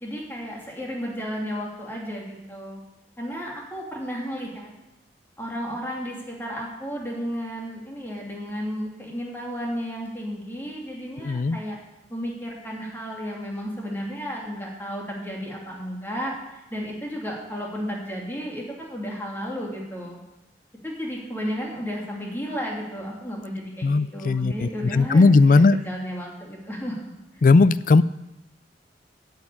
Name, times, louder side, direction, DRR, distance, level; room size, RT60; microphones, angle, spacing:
voice 1, 0.0-2.8 3.2-4.7 5.4-11.8 12.1-16.3 16.7-20.2 20.8-27.1, equal, 10° left, -2 dB, 2.6 m, -33 dB
voice 2, 11.2-11.6 23.8-25.8 27.4-28.0, left 3 dB, 45° left, 16 dB, 0.4 m, -17 dB
8.8 x 8.2 x 8.5 m, 0.97 s
head